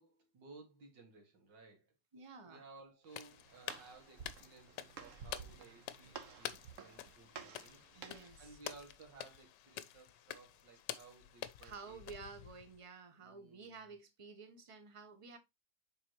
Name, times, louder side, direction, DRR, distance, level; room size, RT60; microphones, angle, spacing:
voice 1, 0.0-1.9 2.5-7.8 8.4-12.0 13.2-13.9, right 4 dB, 90° right, 2.5 m, -58 dB
voice 2, 2.1-2.6 7.9-8.6 11.6-15.4, right 4 dB, 30° right, 0.6 m, -52 dB
Walk footsteps, 3.0-8.4, right 6 dB, 55° right, 1.1 m, -53 dB
sound 1, 3.1-12.8, left 12 dB, 80° left, 1.2 m, -49 dB
7.1 x 4.9 x 2.9 m
omnidirectional pair, 1.9 m